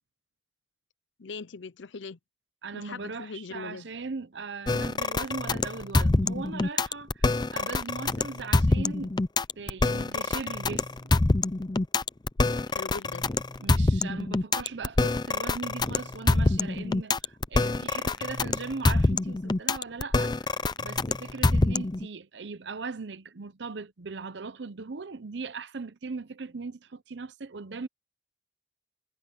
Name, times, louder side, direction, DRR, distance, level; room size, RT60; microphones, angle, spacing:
voice 1, 1.2-2.2 2.7-3.9 12.7-13.3, left 4 dB, 85° left, 0.6 m, -40 dB
voice 2, 2.6-9.1 9.6-11.1 13.6-27.9, right 4 dB, 75° right, 0.8 m, -39 dB
sound 1, 4.7-22.1, left 2 dB, 25° left, 0.5 m, -25 dB
head